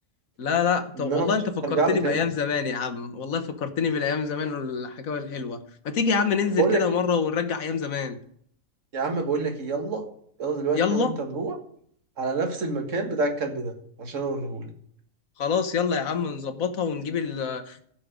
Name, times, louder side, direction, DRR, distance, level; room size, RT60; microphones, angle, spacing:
voice 1, 0.4-8.2 10.7-11.1 15.4-17.8, left 6 dB, 75° left, 8 dB, 1.5 m, -26 dB
voice 2, 1.0-1.3 1.6-2.2 6.6-6.9 8.9-10.0 10.4-11.6 12.2-13.7 14.0-14.7, right 4 dB, 65° right, 4 dB, 2.0 m, -27 dB
16.0 x 5.9 x 5.0 m, 0.65 s
omnidirectional pair, 1.5 m